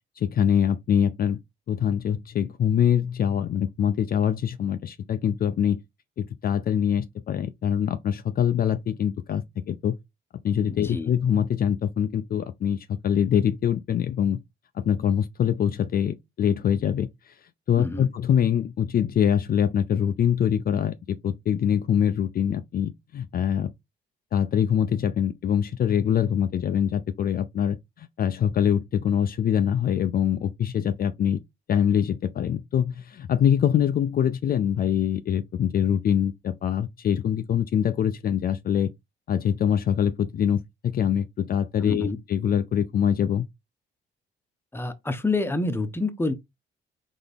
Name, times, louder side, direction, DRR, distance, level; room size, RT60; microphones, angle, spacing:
voice 1, 0.2-1.4 1.7-5.8 6.2-9.9 10.4-14.4 14.7-17.4 17.7-23.7 24.3-31.4 31.7-38.9 39.3-43.4, left 9 dB, 50° left, 0.4 m, -24 dB
voice 2, 10.7-11.1 17.8-18.1 41.8-42.2 44.7-46.3, left 3 dB, 10° left, 0.8 m, -28 dB
4.0 x 3.4 x 3.4 m
cardioid pair, 90°, 20 cm